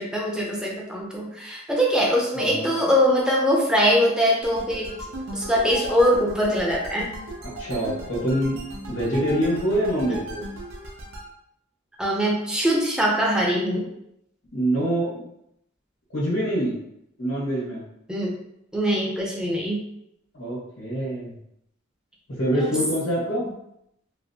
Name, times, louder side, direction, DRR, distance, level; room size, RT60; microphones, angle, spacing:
voice 1, 0.0-4.9 5.3-7.1 12.0-13.8 18.1-18.3 18.7-19.8 22.5-22.7, equal, 5° right, -3 dB, 0.6 m, -22 dB
voice 2, 2.3-2.7 7.6-8.6 8.9-10.4 14.5-15.2 16.1-16.7 17.2-17.8 20.3-21.3 22.4-23.4, right 1 dB, 80° left, -7 dB, 1.4 m, -25 dB
sound 1, 4.4-11.3, right 1 dB, 85° right, 0.6 m, -36 dB
4.2 x 2.0 x 2.8 m, 0.77 s
head